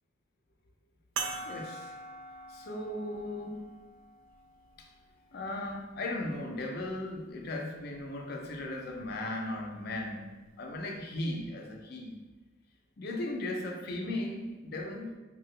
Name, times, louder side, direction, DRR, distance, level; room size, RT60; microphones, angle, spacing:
sound 1, 1.2-6.0 6.7-6.8 9.0-9.1, right 4 dB, 80° right, 0.4 m, -43 dB
voice 1, 1.5-1.9 2.5-3.6 4.8-4.9 5.3-12.2 13.0-15.2, left 1 dB, 50° left, 1 dB, 0.4 m, -37 dB
2.8 x 2.2 x 3.1 m, 1.2 s
head